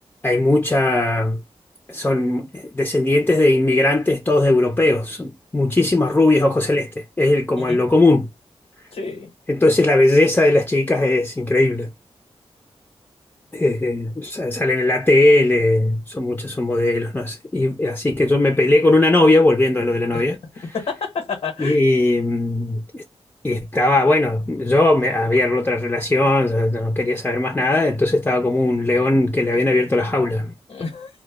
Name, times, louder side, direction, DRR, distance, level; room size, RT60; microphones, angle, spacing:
voice 1, 0.2-1.4 1.9-8.3 9.5-11.9 13.5-20.4 21.6-23.0 23.4-30.5, left 2 dB, 15° left, 0.4 m, -18 dB
voice 2, 8.9-9.3 20.1-20.3 20.7-21.8 30.7-31.2, left 5 dB, 85° left, 0.8 m, -29 dB
2.1 x 2.0 x 3.2 m
wide cardioid pair, 85°, 11 cm